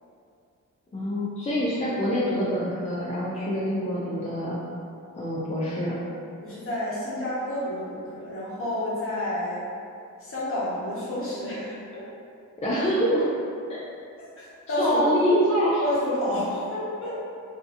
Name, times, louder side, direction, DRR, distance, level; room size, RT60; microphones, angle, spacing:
voice 1, 0.9-4.6 5.1-6.0 12.6-13.3 13.7-13.8 14.8-15.8, equal, 20° left, -8 dB, 0.3 m, -25 dB
voice 2, 6.4-9.6 10.2-12.0 14.4-15.0 15.8-17.1, left 1 dB, 40° left, -9 dB, 1.0 m, -30 dB
2.7 x 2.5 x 2.4 m, 2.5 s
wide cardioid pair, 125°, 32 cm